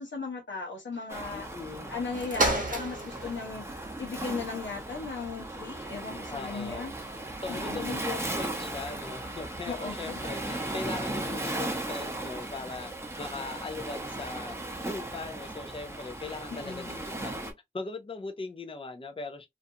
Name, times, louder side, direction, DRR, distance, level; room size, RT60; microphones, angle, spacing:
voice 1, 0.0-1.5 1.9-6.9 7.5-8.0 9.7-10.1 16.5-17.1, left 4 dB, 85° left, 0.7 m, -37 dB
Waves surf, 1.1-17.5, right 1 dB, 15° right, 0.7 m, -37 dB
voice 2, 1.3-1.9 6.3-6.9 7.4-12.9 13.2-14.6 14.8-19.5, left 3 dB, 30° left, 0.5 m, -39 dB
sound 1, 2.1-11.7 12.4-12.5, right 2 dB, 45° right, 0.9 m, -38 dB
2.6 x 2.3 x 2.6 m
wide cardioid pair, 55°, 19 cm